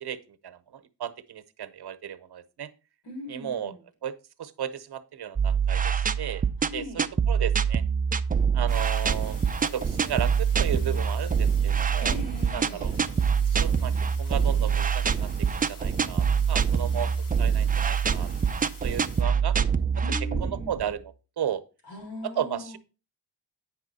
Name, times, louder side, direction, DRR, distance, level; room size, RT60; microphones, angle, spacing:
voice 1, 0.0-2.7 3.3-3.7 4.0-6.4 6.7-7.8 8.5-12.1 12.5-12.9 13.5-13.9 14.2-18.3 18.6-19.6 20.4-21.6 22.2-22.8, right 9 dB, 65° right, 12 dB, 0.9 m, -34 dB
voice 2, 3.0-3.8 6.7-7.1 12.0-12.9 20.0-20.8 21.9-22.8, left 2 dB, 85° left, 2 dB, 3.9 m, -40 dB
sound 1, 5.4-20.9, right 6 dB, 20° right, 0.4 m, -25 dB
sound 2, 8.7-19.2, left 2 dB, 50° left, 2.2 m, -49 dB
8.8 x 5.9 x 4.1 m, 0.31 s
wide cardioid pair, 115°, 41 cm